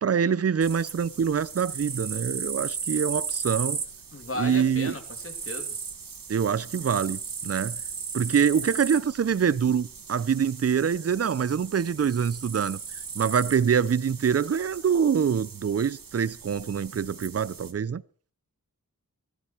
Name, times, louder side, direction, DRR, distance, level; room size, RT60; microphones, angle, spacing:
voice 1, 0.0-3.8 4.4-4.9 6.3-7.8 8.1-12.8 13.1-18.0, right 7 dB, 45° right, 0.6 m, -25 dB
sound 1, 0.6-17.7, right 5 dB, 75° right, 1.7 m, -37 dB
voice 2, 4.1-5.8, left 1 dB, 40° left, 2.9 m, -35 dB
16.5 x 13.0 x 4.5 m
wide cardioid pair, 65°, 34 cm